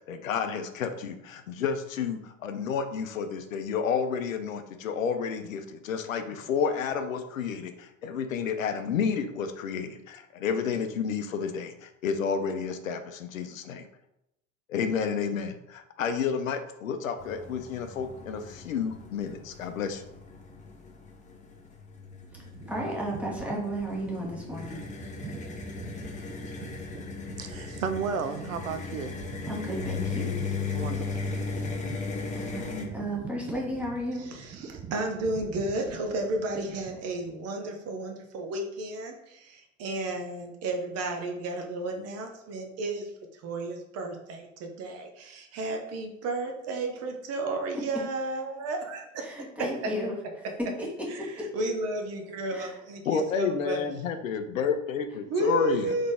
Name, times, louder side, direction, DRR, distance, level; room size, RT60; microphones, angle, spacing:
voice 1, 0.1-13.9 14.7-20.0 53.1-56.0, left 6 dB, 75° left, 8 dB, 0.6 m, -30 dB
sound 1, 17.2-32.9, left 4 dB, 20° left, 0.7 m, -37 dB
sound 2, 21.9-37.4, right 6 dB, 20° right, 0.5 m, -44 dB
voice 2, 22.7-24.8 29.5-30.4 32.3-34.3 47.7-47.8 49.2-51.5 52.5-52.8, equal, 5° right, -4 dB, 1.4 m, -34 dB
voice 3, 27.4-29.2 30.7-31.1, right 6 dB, 80° right, 9 dB, 0.5 m, -33 dB
voice 4, 34.4-43.1 43.4-49.3 51.1-51.3 51.5-53.8 55.3-56.1, right 2 dB, 40° right, 4 dB, 0.9 m, -32 dB
3.8 x 3.6 x 3.5 m, 0.83 s
figure-of-eight pair, 75°, 40 cm